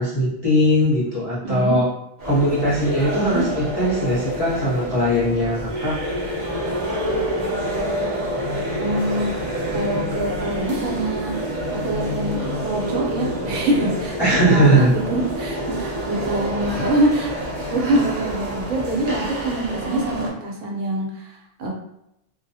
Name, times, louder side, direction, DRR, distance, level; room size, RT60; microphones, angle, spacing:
voice 1, 0.0-1.9 2.2-6.0 14.2-14.9, equal, 25° left, -9 dB, 0.6 m, -19 dB
voice 2, 1.4-1.8 3.1-3.4 8.8-9.3 9.7-11.3 11.8-17.3 17.7-21.7, right 1 dB, 80° right, -1 dB, 1.0 m, -24 dB
sound 1, 2.2-20.3, equal, 40° right, 0.6 m, -27 dB
2.2 x 2.1 x 2.7 m, 0.82 s
omnidirectional pair, 1.2 m